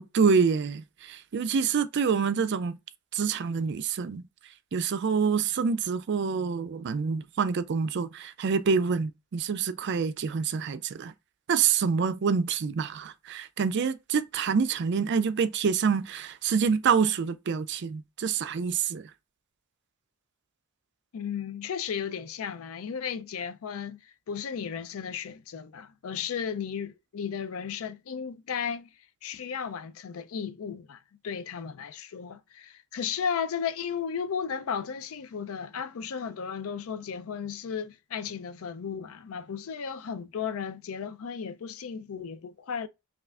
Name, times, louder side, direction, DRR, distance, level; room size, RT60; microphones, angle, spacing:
voice 1, 0.0-2.8 3.1-4.2 4.7-11.1 11.5-19.1, right 6 dB, 50° right, 0.4 m, -27 dB
voice 2, 21.1-28.9 29.2-42.9, left 7 dB, 70° left, 0.4 m, -34 dB
5.5 x 2.4 x 2.4 m
head